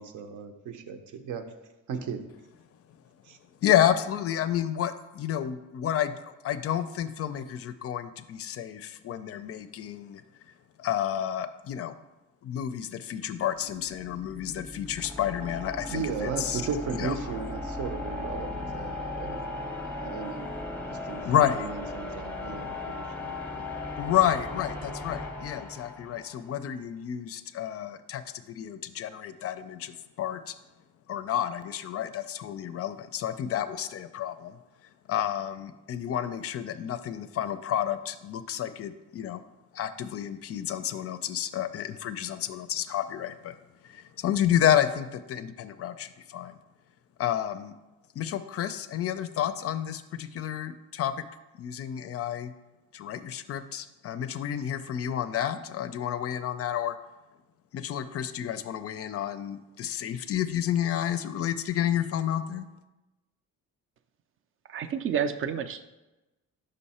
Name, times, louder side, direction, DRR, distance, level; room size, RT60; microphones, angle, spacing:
voice 1, 0.0-1.5 1.9-2.2 3.2-3.4 15.8-20.5 20.9-24.0, right 6 dB, 75° right, 7 dB, 0.7 m, -36 dB
voice 2, 3.6-10.2 10.8-11.9 12.4-16.6 17.0-17.1 21.2-21.7 24.0-30.6 31.1-34.6 35.1-39.4 39.7-43.6 43.8-46.6 47.2-47.7 48.2-51.2 51.6-52.5 52.9-56.9 57.7-62.7, left 10 dB, 50° left, 11 dB, 0.4 m, -30 dB
sound 1, 13.4-26.5, left 2 dB, 5° left, 0.7 m, -37 dB
voice 3, 64.6-65.8, right 8 dB, 45° right, 11 dB, 0.4 m, -30 dB
5.5 x 5.3 x 4.2 m, 1.0 s
cardioid pair, 120°, 31 cm